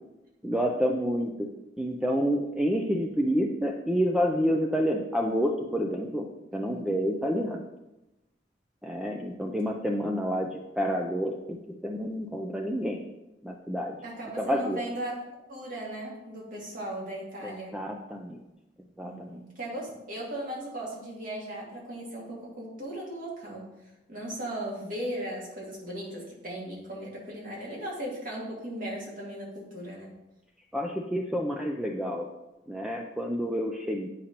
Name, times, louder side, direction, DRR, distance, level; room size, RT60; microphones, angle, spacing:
voice 1, 0.4-1.3 1.8-6.3 6.5-7.6 8.8-11.6 11.8-13.0 13.4-14.0 14.4-14.8 17.7-18.4 19.0-19.4 30.7-32.3 32.7-34.1, equal, 5° right, 0 dB, 0.4 m, -28 dB
voice 2, 6.5-7.4 14.0-17.8 19.0-23.7 24.1-30.1, right 1 dB, 50° right, -4 dB, 2.0 m, -37 dB
8.7 x 5.1 x 2.9 m, 0.96 s
head